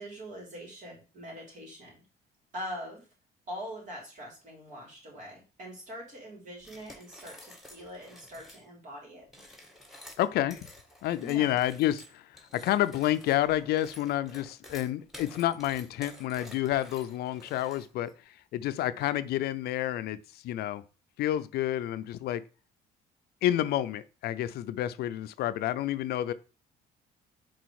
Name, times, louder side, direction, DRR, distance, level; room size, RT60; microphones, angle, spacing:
voice 1, 0.0-2.0 2.5-3.1 3.5-9.2 11.2-11.6, equal, 45° right, 3.6 m, -43 dB
sound 1, 6.6-8.7 9.2-18.1, left 1 dB, ahead, 1.8 m, -51 dB
voice 2, 10.2-10.6 11.0-12.3 12.5-20.8 21.2-22.4 23.4-26.3, left 13 dB, 70° left, 0.5 m, -29 dB
5.1 x 4.0 x 4.7 m
cardioid pair, 110°, 17 cm